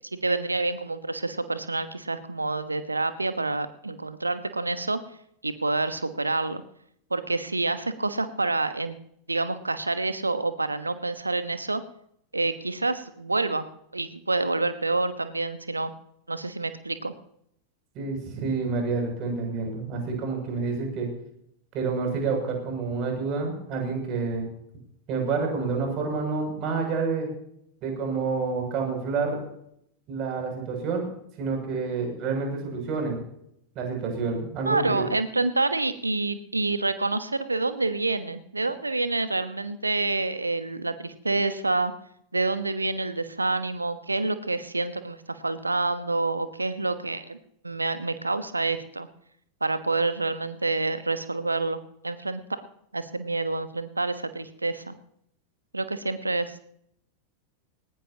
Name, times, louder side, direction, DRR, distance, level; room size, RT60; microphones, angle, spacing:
voice 1, 0.1-5.0 5.4-6.6 7.1-9.0 9.3-11.8 12.3-13.6 13.9-15.9 16.3-17.1 34.6-41.9 42.3-47.4 47.6-49.1 49.6-52.6 52.9-54.9 55.7-56.6, right 3 dB, 80° right, 12 dB, 1.1 m, -28 dB
voice 2, 17.9-21.1 21.7-24.5 25.1-27.3 27.8-29.4 30.1-31.0 31.4-33.2 33.7-35.0, right 4 dB, 40° right, 2 dB, 6.9 m, -28 dB
20.0 x 19.0 x 2.9 m, 0.71 s
figure-of-eight pair, 90°, 0 cm